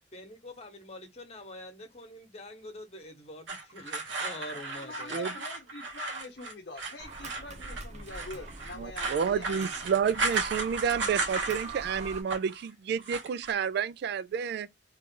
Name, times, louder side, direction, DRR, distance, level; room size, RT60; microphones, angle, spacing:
voice 1, 0.1-5.2, left 1 dB, 35° left, 1.0 m, -45 dB
sound 1, 3.5-11.9 12.1-12.6 13.0-13.5, right 3 dB, 80° right, 1.2 m, -35 dB
voice 2, 4.5-9.9, left 3 dB, 60° left, 0.8 m, -45 dB
sound 2, 7.0-12.2, right 3 dB, 40° right, 0.8 m, -43 dB
voice 3, 8.8-14.7, right 7 dB, 60° right, 0.3 m, -30 dB
3.2 x 2.4 x 3.6 m
head